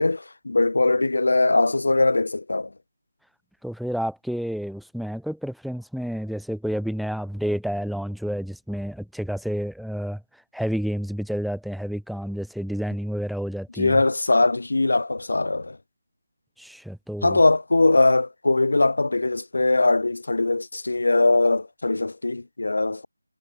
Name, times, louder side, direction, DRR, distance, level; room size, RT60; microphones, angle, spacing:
voice 1, 0.0-2.7 13.8-15.8 17.2-23.1, left 2 dB, 55° left, 0.6 m, -21 dB
voice 2, 3.6-10.2 10.5-14.0 16.6-17.4, equal, ahead, 0.6 m, -30 dB
figure-of-eight pair, 160°, 0 cm